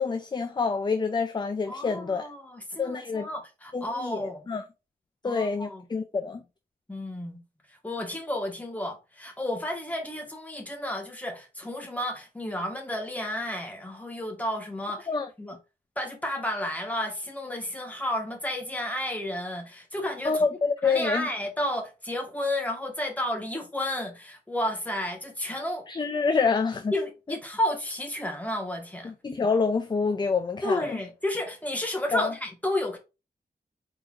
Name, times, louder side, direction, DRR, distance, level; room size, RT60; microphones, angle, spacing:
voice 1, 0.0-2.3 2.8-3.3 3.7-4.6 5.2-6.4 15.1-15.3 20.2-21.3 25.9-26.9 29.0-30.9 32.1-32.3, left 4 dB, 25° left, 0.4 m, -27 dB
voice 2, 1.7-4.4 5.2-5.8 6.9-7.4 7.7-15.1 15.4-15.6 16.0-20.5 20.8-25.9 26.9-29.1 30.6-33.0, left 1 dB, 10° left, 1.3 m, -32 dB
4.5 x 3.9 x 2.4 m
wide cardioid pair, 115°, 16 cm